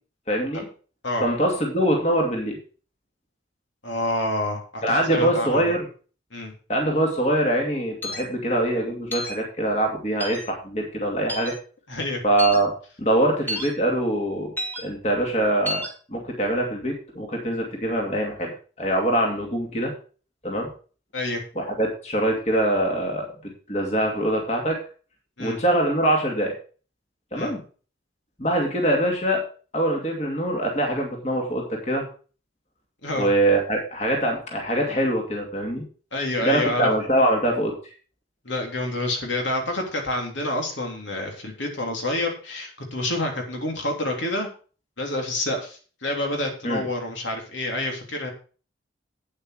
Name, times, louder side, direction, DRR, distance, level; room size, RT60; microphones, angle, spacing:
voice 1, 0.3-0.7 1.2-2.6 4.8-5.9 6.7-11.5 12.2-12.7 13.0-15.8 16.1-19.9 20.4-20.7 21.5-24.8 25.4-26.5 27.3-27.6 28.4-29.4 29.7-32.0 33.1-35.8 36.4-37.7 46.6-46.8, right 1 dB, 35° left, 1 dB, 2.6 m, -23 dB
voice 2, 3.8-5.7 6.3-6.5 11.9-12.2 21.1-21.4 25.4-25.6 27.3-27.5 33.0-33.3 36.1-36.9 38.4-44.5 45.0-48.3, left 1 dB, 70° left, 2 dB, 3.1 m, -28 dB
sound 1, 8.0-8.2 9.1-9.4 10.2-10.4 11.3-11.5 12.4-12.6 13.5-13.7 14.6-14.8 15.6-15.9, equal, 10° left, 2.4 m, -30 dB
9.2 x 8.7 x 4.8 m, 0.38 s
head